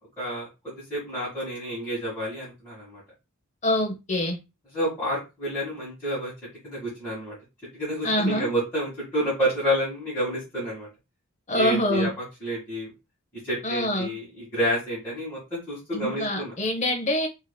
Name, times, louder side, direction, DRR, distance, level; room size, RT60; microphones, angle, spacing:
voice 1, 0.2-3.0 4.7-6.3 6.6-7.4 7.7-10.9 11.5-12.1 12.4-12.9 13.4-16.5, equal, 10° left, 1.8 m, -29 dB
voice 2, 3.6-4.4 8.0-8.5 11.5-12.1 13.6-14.1 15.9-17.3, left 1 dB, 30° left, 0.7 m, -25 dB
4.5 x 2.8 x 2.2 m
head